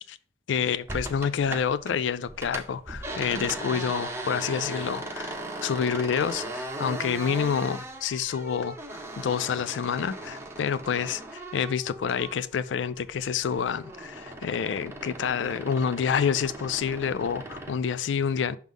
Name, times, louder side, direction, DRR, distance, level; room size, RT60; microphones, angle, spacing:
voice 1, 0.5-18.6, left 7 dB, 75° left, 0.4 m, -28 dB
sound 1, 0.9-1.9 2.2-12.6 12.9-17.8, right 2 dB, 15° right, 0.8 m, -38 dB
6.1 x 3.7 x 5.3 m
head